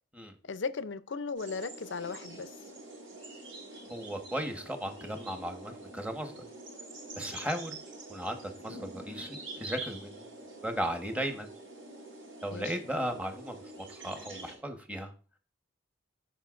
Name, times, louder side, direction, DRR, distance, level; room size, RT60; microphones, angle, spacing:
voice 1, 0.4-2.5 12.5-12.8, left 4 dB, 75° left, 0.6 m, -36 dB
sound 1, 1.4-14.6, right 2 dB, 85° right, 4.6 m, -46 dB
voice 2, 3.9-6.5 7.2-7.8 8.1-10.3 10.6-11.5 12.4-15.1, right 1 dB, 5° right, 1.3 m, -36 dB
15.5 x 5.3 x 2.5 m
head